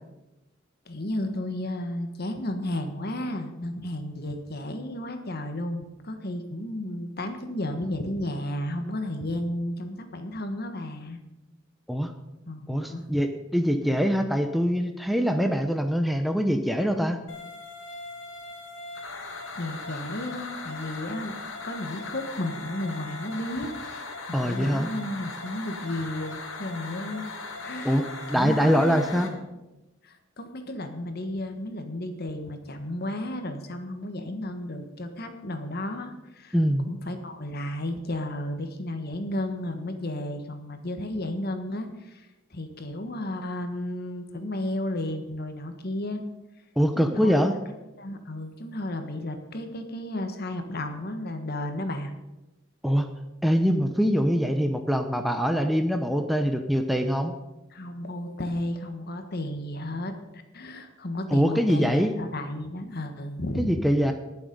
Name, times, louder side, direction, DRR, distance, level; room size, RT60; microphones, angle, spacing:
voice 1, 0.8-11.2 12.5-13.1 19.6-21.3 21.6-27.3 27.6-29.0 30.0-36.6 36.8-46.2 46.9-47.4 48.0-52.1 57.7-63.8, left 1 dB, 50° left, 6 dB, 1.4 m, -33 dB
voice 2, 12.7-17.2 24.3-24.9 27.8-29.3 36.5-36.9 46.8-47.5 52.8-53.1 53.4-57.3 61.3-62.1 63.6-64.1, equal, ahead, 5 dB, 0.7 m, -23 dB
sound 1, 17.3-29.3, left 3 dB, 85° left, 2.2 m, -39 dB
20.0 x 7.2 x 5.4 m, 1.0 s
head